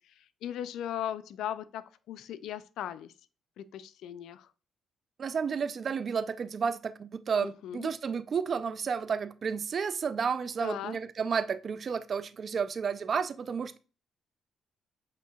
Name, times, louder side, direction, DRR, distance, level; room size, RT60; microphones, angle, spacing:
voice 1, 0.4-3.1 3.6-4.5 7.4-7.9 10.6-11.0, left 10 dB, 80° left, 0.3 m, -38 dB
voice 2, 5.2-13.8, right 6 dB, 45° right, 0.3 m, -31 dB
8.0 x 2.7 x 2.3 m
cardioid pair, 90°, 0 cm